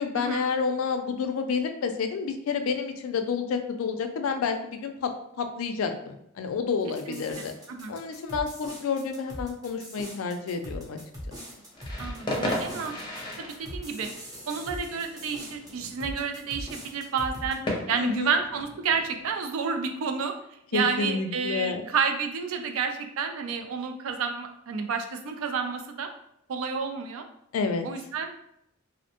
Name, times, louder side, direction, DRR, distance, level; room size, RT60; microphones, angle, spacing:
voice 1, 0.0-5.1 5.4-7.5 7.9-11.0 17.9-18.3 20.7-21.9 27.5-27.9, left 5 dB, 80° left, 7 dB, 0.3 m, -29 dB
sound 1, 6.9-17.5, equal, 20° right, 0.6 m, -41 dB
sound 2, 11.7-19.3, left 1 dB, 25° left, 0.5 m, -36 dB
voice 2, 12.0-12.9 13.6-14.1 14.5-17.6 17.9-20.3 20.7-26.1 26.5-27.2 27.8-28.3, right 5 dB, 85° right, 6 dB, 0.4 m, -30 dB
2.5 x 2.1 x 2.8 m, 0.76 s
head